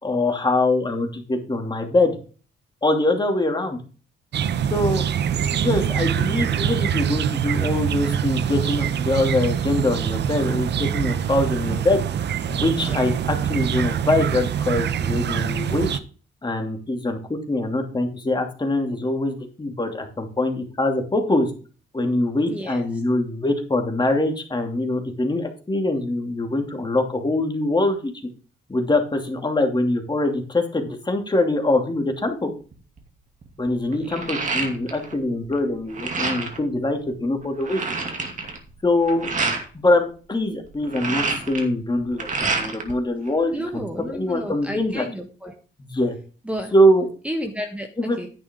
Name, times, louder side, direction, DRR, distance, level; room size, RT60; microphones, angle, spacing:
voice 1, 0.0-2.2 2.8-3.8 4.7-5.0 5.6-12.0 12.5-15.9 16.4-21.5 21.9-28.1 28.7-32.5 33.6-38.1 38.8-39.3 39.8-45.0 45.8-46.2 46.7-47.1 48.0-48.2, left 1 dB, 20° left, 4 dB, 2.6 m, -23 dB
sound 1, 4.3-16.0, right 8 dB, 60° right, 0.8 m, -24 dB
voice 2, 22.5-23.0 33.9-34.2 43.5-45.5 46.4-46.7 47.2-48.3, equal, 5° right, 3 dB, 1.5 m, -32 dB
sound 2, 32.7-33.0 33.4-35.2 35.5-36.6 37.1-37.2 37.4-39.6 40.7-42.9 43.3-44.1, right 3 dB, 40° right, 2.4 m, -28 dB
10.5 x 8.7 x 3.7 m, 0.37 s
cardioid pair, 90°, 20 cm